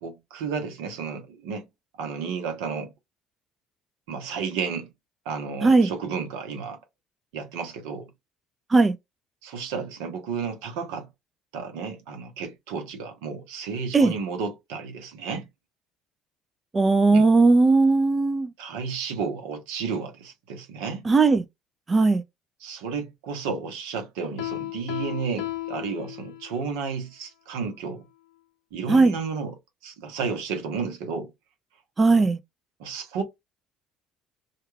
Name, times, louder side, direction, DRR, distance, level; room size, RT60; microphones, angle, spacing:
voice 1, 0.0-1.6 2.0-2.9 4.1-4.9 5.2-6.8 7.3-8.1 9.4-11.1 11.5-15.5 17.1-17.3 18.6-21.0 22.6-28.0 28.7-29.5 29.8-31.3 32.1-32.2 32.8-33.2, right 5 dB, 85° right, 0.8 m, -32 dB
voice 2, 16.7-18.5 21.1-21.4 21.9-22.2 28.9-29.1 32.0-32.4, right 3 dB, 30° right, 0.4 m, -18 dB
Piano, 24.4-26.7, left 15 dB, 85° left, 0.5 m, -34 dB
2.3 x 2.3 x 3.1 m
supercardioid pair, 75°, 0 cm